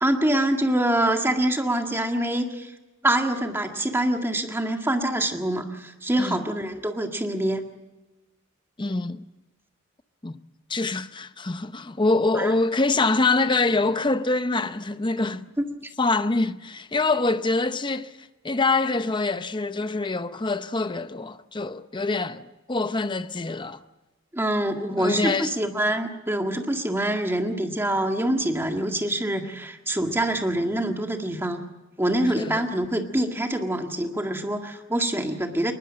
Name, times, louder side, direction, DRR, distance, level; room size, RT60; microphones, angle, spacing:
voice 1, 0.0-2.7 3.0-7.7 12.3-12.5 15.6-15.7 24.3-31.6 32.0-35.7, right 1 dB, 10° right, 1.8 m, -25 dB
voice 2, 8.8-9.2 10.2-10.4 10.7-15.5 16.0-18.1 18.4-23.8 24.9-25.5 32.4-32.6, left 3 dB, 25° left, 0.7 m, -25 dB
22.0 x 20.5 x 7.5 m
head